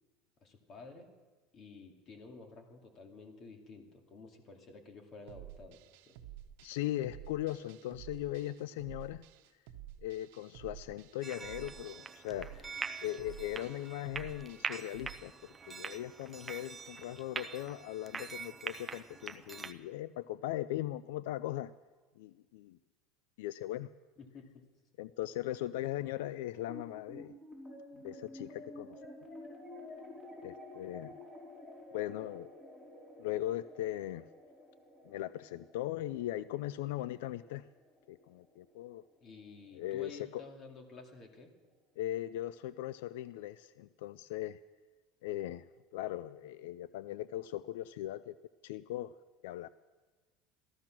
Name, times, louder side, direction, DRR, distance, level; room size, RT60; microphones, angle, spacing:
voice 1, 0.4-1.1 1.5-5.8 6.1-6.2 24.2-24.7 39.2-41.5, left 3 dB, 35° left, 3 dB, 2.3 m, -52 dB
sound 1, 5.3-15.1, right 12 dB, 75° right, 1.1 m, -52 dB
voice 2, 6.6-9.2 10.0-12.7 13.0-21.7 22.2-22.8 23.4-23.9 25.0-27.3 28.0-29.0 30.4-31.1 31.9-32.5 33.2-34.3 35.0-37.7 38.1-39.0 39.7-40.4 42.0-44.6 45.2-48.3 48.6-49.1 49.4-49.7, left 14 dB, 85° left, 17 dB, 0.4 m, -39 dB
sound 2, 11.2-19.7, right 4 dB, 15° right, 0.6 m, -44 dB
sound 3, 26.7-39.3, left 1 dB, 15° left, 4.3 m, -51 dB
15.0 x 14.0 x 6.0 m, 1.3 s
supercardioid pair, 150°, 0 cm